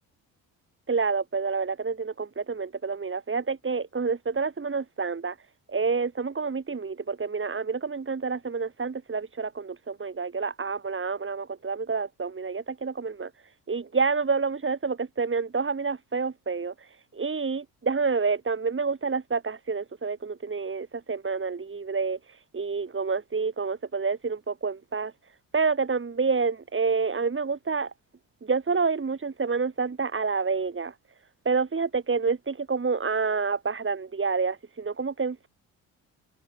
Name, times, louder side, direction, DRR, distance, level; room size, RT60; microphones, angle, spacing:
voice 1, 0.9-5.4 5.7-13.3 13.7-16.7 17.1-22.2 22.5-25.1 25.5-27.9 28.4-30.9 31.5-35.5, right 4 dB, 30° right, 3.9 m, -28 dB
hypercardioid pair, 55°, 41 cm